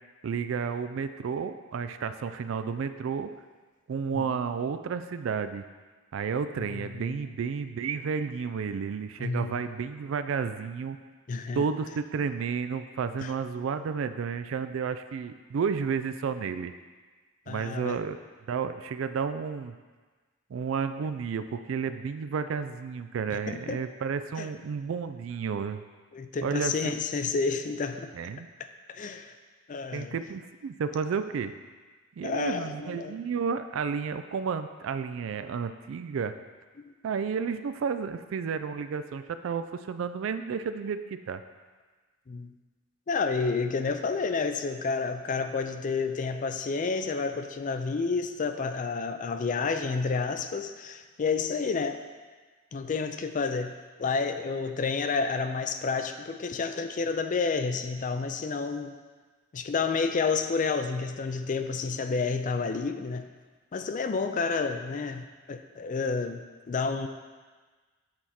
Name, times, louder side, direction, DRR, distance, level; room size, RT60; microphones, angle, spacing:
voice 1, 0.2-3.3 3.9-5.6 6.1-11.0 11.6-16.7 17.5-18.2 18.5-19.7 20.5-25.8 26.4-26.9 28.1-28.5 29.9-31.5 32.2-36.3 37.0-41.4, right 6 dB, 70° right, 10 dB, 0.3 m, -31 dB
voice 2, 6.6-7.1 9.2-9.6 11.3-11.7 13.2-13.3 17.5-18.0 23.3-23.8 24.4-24.5 26.1-28.1 28.6-29.3 29.7-30.1 32.2-33.2 42.3-42.5 43.1-52.0 52.7-58.9 59.5-63.3 63.7-67.1, left 4 dB, 40° left, 8 dB, 0.4 m, -30 dB
7.7 x 4.6 x 4.2 m, 1.4 s
head